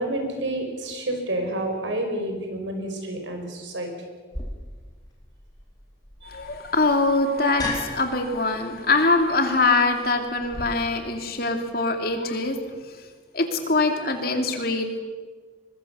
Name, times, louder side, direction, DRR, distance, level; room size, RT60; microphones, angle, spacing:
voice 1, 0.0-3.9 6.2-6.3, right 1 dB, 90° right, 4 dB, 5.5 m, -29 dB
sound 1, 4.3-10.6, left 2 dB, 20° left, 4.2 m, -37 dB
voice 2, 6.2-12.6 13.3-15.0, left 3 dB, 55° left, 5 dB, 2.8 m, -23 dB
23.0 x 22.0 x 7.0 m, 1.5 s
head